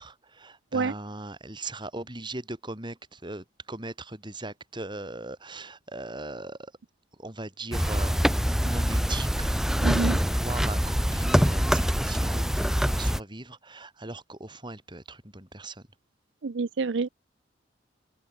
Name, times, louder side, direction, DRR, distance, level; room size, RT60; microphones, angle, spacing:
voice 1, 0.0-6.7 7.2-15.8, right 2 dB, 25° right, 4.4 m, -39 dB
sound 1, 7.7-13.2, equal, 5° right, 1.9 m, -24 dB
voice 2, 9.8-10.2 16.4-17.1, right 4 dB, 80° right, 0.6 m, -27 dB
open air
head